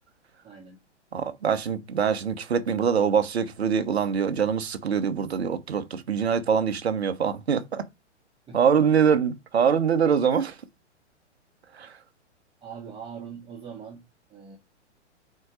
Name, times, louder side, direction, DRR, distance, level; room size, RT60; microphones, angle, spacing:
voice 1, 0.4-0.8 8.5-8.6 12.6-14.0 14.3-14.6, right 7 dB, 15° right, 1.2 m, -41 dB
voice 2, 1.1-7.9 8.5-10.6 11.8-11.9, right 7 dB, 60° right, 1.0 m, -24 dB
4.6 x 4.3 x 4.9 m
figure-of-eight pair, 110°, 36 cm